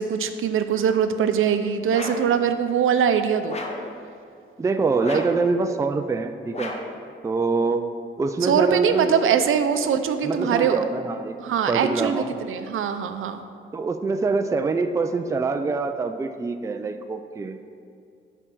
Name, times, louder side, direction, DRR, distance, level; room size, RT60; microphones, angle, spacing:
voice 1, 0.0-3.6 8.4-10.8 11.4-13.4, right 7 dB, 80° right, 9 dB, 0.5 m, -22 dB
sound 1, 1.9-2.4 3.5-3.9 5.0-5.5 6.5-7.0, left 2 dB, 30° left, 0.8 m, -34 dB
voice 2, 4.6-6.7 7.2-7.9 8.2-9.4 10.2-11.3 11.7-12.3 13.7-17.6, right 4 dB, 15° right, 7 dB, 0.3 m, -25 dB
8.0 x 4.5 x 6.1 m, 2.4 s
wide cardioid pair, 145°, 21 cm